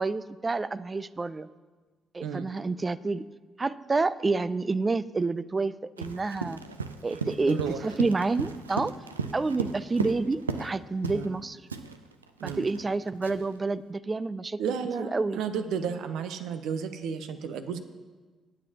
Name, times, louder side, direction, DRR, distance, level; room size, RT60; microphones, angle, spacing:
voice 1, 0.0-1.5 2.1-3.3 3.6-6.6 7.0-8.9 9.3-11.6 12.4-14.6 15.0-15.4, right 3 dB, 30° right, 16 dB, 0.5 m, -29 dB
voice 2, 2.2-2.5 7.5-7.8 11.1-11.3 12.4-12.7 14.6-17.8, right 6 dB, 65° right, 9 dB, 0.8 m, -32 dB
Run, 6.0-10.7 11.0-11.3 11.7-13.6, right 4 dB, 90° right, 0.4 m, -36 dB
21.5 x 9.0 x 2.9 m, 1.4 s
figure-of-eight pair, 45°, 0 cm